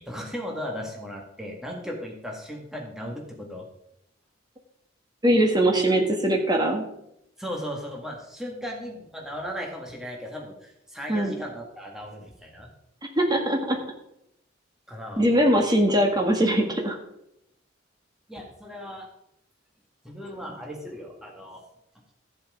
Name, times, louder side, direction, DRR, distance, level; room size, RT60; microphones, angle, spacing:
voice 1, 0.0-3.7 7.4-12.7 14.9-15.2 18.3-19.1 20.0-21.6, equal, 5° right, -1 dB, 1.9 m, -36 dB
voice 2, 5.2-6.9 11.1-11.4 13.1-13.8 15.2-17.0, right 1 dB, 20° right, 2 dB, 1.8 m, -21 dB
13.5 x 7.4 x 5.1 m, 0.81 s
head